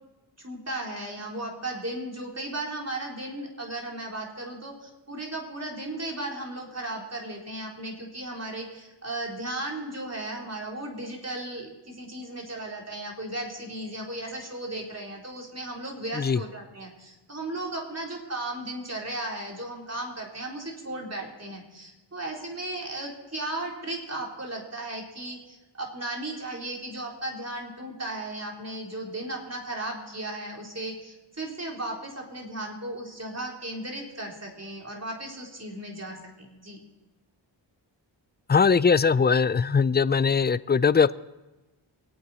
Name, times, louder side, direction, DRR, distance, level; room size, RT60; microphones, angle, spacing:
voice 1, 0.4-36.8, right 1 dB, 30° right, -1 dB, 3.7 m, -36 dB
voice 2, 38.5-41.1, left 5 dB, 25° left, 18 dB, 0.4 m, -21 dB
24.0 x 8.9 x 4.2 m, 1.1 s
cardioid pair, 45°, 48 cm